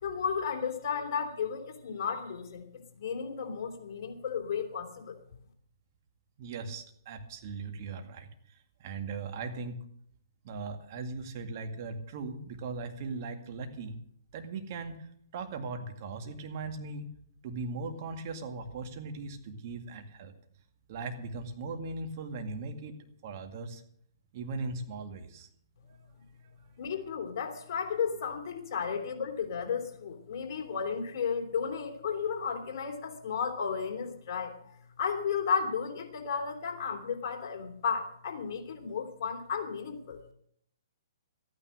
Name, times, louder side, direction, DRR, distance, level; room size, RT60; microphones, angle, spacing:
voice 1, 0.0-2.7 2.9-5.2 26.8-40.2, left 6 dB, 50° left, 1 dB, 3.2 m, -33 dB
voice 2, 6.4-9.8 10.4-14.0 14.3-17.1 17.4-20.3 20.9-23.8 24.3-25.5, right 3 dB, 45° right, 5 dB, 2.1 m, -39 dB
14.0 x 9.7 x 6.5 m, 0.68 s
hypercardioid pair, 135°, 2 cm